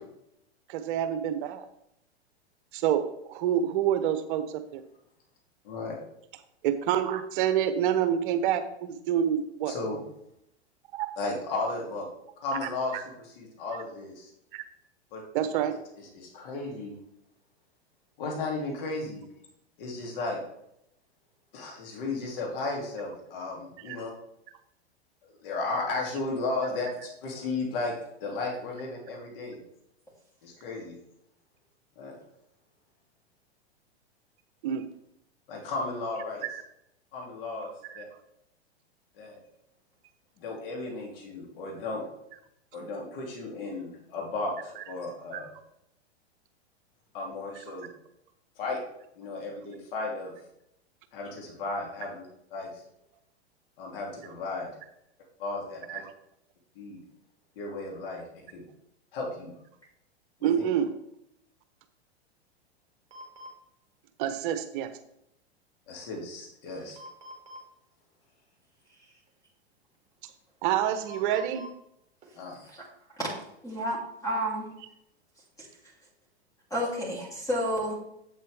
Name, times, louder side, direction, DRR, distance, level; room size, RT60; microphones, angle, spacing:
voice 1, 0.7-1.7 2.7-3.0 3.3-4.8 6.6-9.7 10.9-11.1 12.6-13.0 14.5-14.6 15.3-15.8 23.9-24.0 34.6-34.8 36.4-36.6 37.9-38.0 45.3-45.4 55.9-56.0 60.4-60.9 64.2-64.9 70.6-71.6, right 10 dB, 50° right, 10 dB, 0.9 m, -27 dB
voice 2, 5.6-6.0 9.7-10.0 11.2-12.1 12.4-14.3 15.1-15.2 16.0-16.9 18.2-19.2 19.8-20.4 21.5-24.1 25.4-29.6 30.4-31.0 32.0-32.2 35.5-36.4 37.1-37.7 37.9-38.1 39.2-39.4 40.4-42.1 42.7-45.5 47.1-47.9 48.6-48.8 49.1-50.3 51.1-52.2 52.5-52.7 53.8-54.8 55.4-56.0 56.7-57.0 57.6-58.2 58.5-58.6 59.1-59.5 60.4-60.6 65.9-67.0 72.3-72.7, left 3 dB, 55° left, -1 dB, 2.9 m, -34 dB
sound 1, 63.1-63.5 66.7-67.6 69.3-69.4 70.8-71.7 72.2-72.3 72.5-72.7, left 1 dB, 20° right, 2.2 m, -46 dB
voice 3, 73.2-74.8 75.6-75.7 76.7-77.9, equal, 10° left, -5 dB, 3.1 m, -31 dB
7.9 x 7.6 x 3.5 m, 0.78 s
hypercardioid pair, 110°, 33 cm